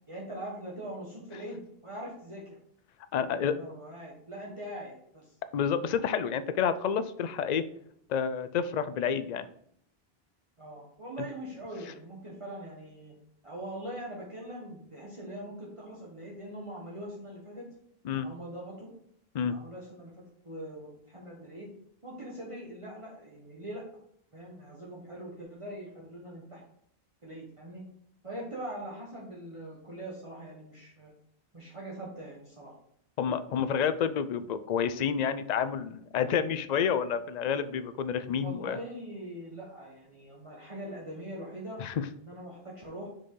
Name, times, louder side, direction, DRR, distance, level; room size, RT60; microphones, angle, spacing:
voice 1, 0.1-2.6 3.2-5.3 10.6-13.1 13.4-17.7 18.1-18.9 19.5-21.7 22.0-23.8 24.3-26.6 27.2-27.8 28.2-31.1 31.5-32.7 38.4-41.8 42.2-43.1, right 1 dB, 30° right, -5 dB, 1.3 m, -42 dB
voice 2, 3.1-3.5 5.5-7.6 8.1-9.5 18.0-18.3 19.3-19.5 33.2-38.8 41.8-42.1, left 7 dB, 55° left, 13 dB, 0.5 m, -29 dB
6.1 x 5.2 x 3.8 m, 0.69 s
omnidirectional pair, 1.0 m